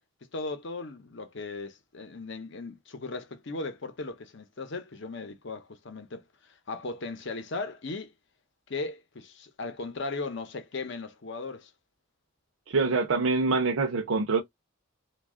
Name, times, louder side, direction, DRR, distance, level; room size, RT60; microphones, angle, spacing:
voice 1, 0.3-8.1 8.7-11.7, left 3 dB, 55° left, 0.7 m, -37 dB
voice 2, 12.7-14.4, right 4 dB, 75° right, 0.5 m, -25 dB
3.1 x 2.3 x 3.5 m
head